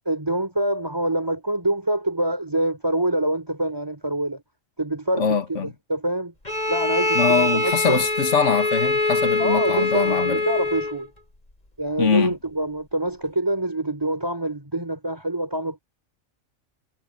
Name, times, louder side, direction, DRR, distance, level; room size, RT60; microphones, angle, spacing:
voice 1, 0.1-4.4 4.8-6.3 6.7-8.1 9.4-11.1 11.8-15.8, right 1 dB, 15° right, 4.4 m, -25 dB
voice 2, 5.2-5.7 7.2-10.4 12.0-12.3, left 6 dB, 60° left, 1.9 m, -23 dB
Bowed string instrument, 6.5-11.1, left 2 dB, 30° left, 4.0 m, -23 dB
omnidirectional pair, 1.4 m